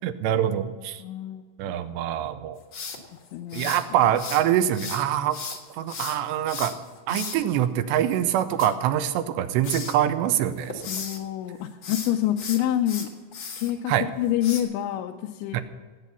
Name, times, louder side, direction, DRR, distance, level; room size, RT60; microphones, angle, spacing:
voice 1, 0.0-1.0 1.6-2.6 3.5-5.4 5.8-6.7 7.1-10.7 13.9-14.1 15.5-15.6, right 11 dB, 85° right, 10 dB, 2.8 m, -24 dB
voice 2, 1.0-1.4 3.3-3.7 7.1-7.3 10.9-13.1 13.6-15.6, left 12 dB, 85° left, 3 dB, 2.9 m, -27 dB
sound 1, 2.7-4.4 4.7-7.4 8.4-9.3 9.6-10.0 10.4-11.2 11.7-13.7 14.4-14.6, left 5 dB, 65° left, 1.2 m, -36 dB
17.5 x 8.3 x 7.0 m, 1.4 s
omnidirectional pair, 5.2 m